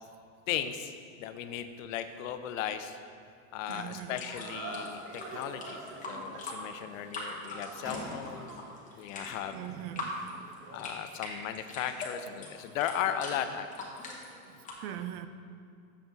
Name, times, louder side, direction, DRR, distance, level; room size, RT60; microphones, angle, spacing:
voice 1, 0.5-0.9 1.2-3.0 3.5-5.8 6.1-8.5 9.0-9.6 10.7-13.7, left 9 dB, 70° left, 9 dB, 0.7 m, -36 dB
sound 1, 3.7-14.7, left 2 dB, 20° left, 1.2 m, -43 dB
voice 2, 3.7-4.2 9.5-10.2 14.5-15.3, right 11 dB, 50° right, 10 dB, 0.5 m, -41 dB
sound 2, 4.2-10.9, right 2 dB, 30° right, 1.2 m, -46 dB
sound 3, 4.9-5.7 6.0-6.8 7.4-7.5 7.8-8.8, equal, 10° right, 1.7 m, -47 dB
7.2 x 7.0 x 3.9 m, 2.5 s
supercardioid pair, 140°, 41 cm